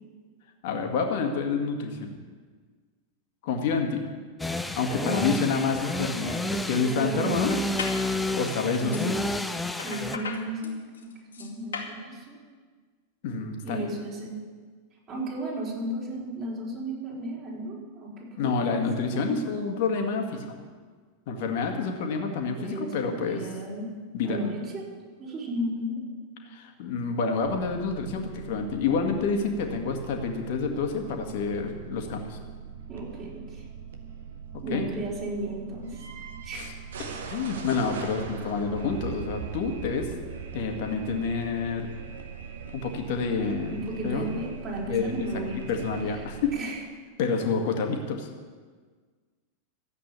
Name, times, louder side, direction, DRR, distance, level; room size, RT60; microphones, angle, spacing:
voice 1, 0.6-2.2 3.4-4.0 4.8-7.5 8.4-9.2 13.2-13.9 18.4-20.6 21.3-23.5 24.1-24.4 26.4-32.4 34.7-34.9 36.5-36.7 37.3-40.1 40.5-41.9 42.7-43.8 44.0-44.4 44.8-45.3 45.7-46.5 47.2-48.3, left 5 dB, 50° left, 3 dB, 2.0 m, -28 dB
sound 1, 4.4-10.2, left 1 dB, 5° left, 0.8 m, -30 dB
voice 2, 5.0-5.4 6.7-7.6 8.8-9.1 9.8-10.8 11.0-11.1 11.4-12.4 13.6-14.4 15.1-18.9 19.1-19.4 22.6-23.9 24.2-24.8 25.2-26.0 32.9-33.6 34.6-36.0 36.4-36.7 43.5-45.6 46.1-46.2 46.5-46.8, right 1 dB, 35° right, -4 dB, 4.9 m, -34 dB
sound 2, 6.3-6.9 7.5-8.0 8.4-9.1 9.8-12.0, left 5 dB, 70° left, 2.3 m, -38 dB
sound 3, 27.4-46.6, right 6 dB, 60° right, 1.5 m, -41 dB
14.0 x 8.4 x 8.6 m, 1.5 s
figure-of-eight pair, 90°, 0 cm